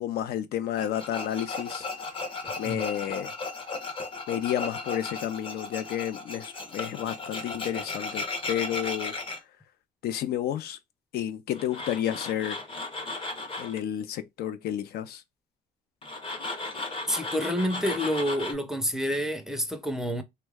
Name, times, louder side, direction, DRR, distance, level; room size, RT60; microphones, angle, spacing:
voice 1, 0.0-1.9 2.6-3.3 4.3-9.5 10.0-10.8 11.1-12.7 13.6-15.2, left 11 dB, 70° left, 0.5 m, -31 dB
Tools, 0.8-9.4 11.5-13.8 16.0-18.5, left 3 dB, 30° left, 0.7 m, -35 dB
voice 2, 17.1-20.2, equal, 5° right, 0.5 m, -28 dB
3.0 x 2.2 x 3.3 m
cardioid pair, 110°, 17 cm